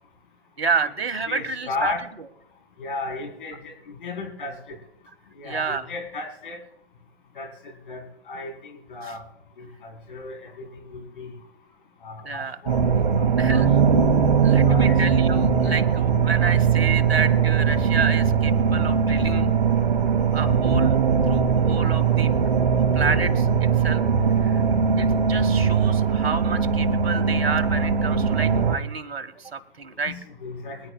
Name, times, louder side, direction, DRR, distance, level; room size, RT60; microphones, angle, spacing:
voice 1, 0.6-1.9 5.4-5.9 9.0-9.1 12.2-12.6 13.4-13.7 14.4-19.5 20.3-21.0 21.2-22.3 22.7-24.0 24.4-24.6 25.0-30.1, right 5 dB, 75° right, 8 dB, 1.7 m, -29 dB
voice 2, 1.3-2.0 2.8-4.5 5.4-6.6 7.4-8.0 8.3-8.5 8.9-9.2 9.6-10.7 10.9-11.3 12.0-14.0 14.6-15.0 15.6-15.8 30.1-30.2 30.4-30.8, left 3 dB, 55° left, 4 dB, 3.9 m, -34 dB
sound 1, 12.7-28.8, right 6 dB, 50° right, 2.3 m, -20 dB
24.0 x 10.5 x 2.3 m, 0.76 s
figure-of-eight pair, 135°, 31 cm